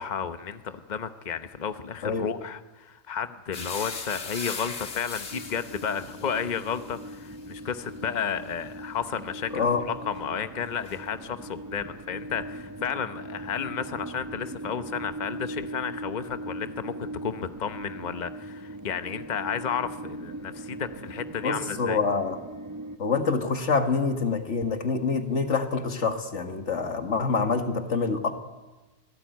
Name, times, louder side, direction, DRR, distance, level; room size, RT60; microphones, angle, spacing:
voice 1, 0.0-22.0, left 7 dB, 40° left, 10 dB, 1.1 m, -32 dB
sound 1, 3.5-11.5 11.8-12.9, left 4 dB, 75° left, 1.9 m, -41 dB
sound 2, 5.3-23.0, right 1 dB, 15° right, 1.1 m, -40 dB
voice 2, 9.5-9.8 21.4-22.4 23.0-28.3, left 4 dB, 90° left, 6 dB, 2.0 m, -26 dB
25.5 x 18.0 x 9.3 m, 1.2 s
omnidirectional pair, 1.2 m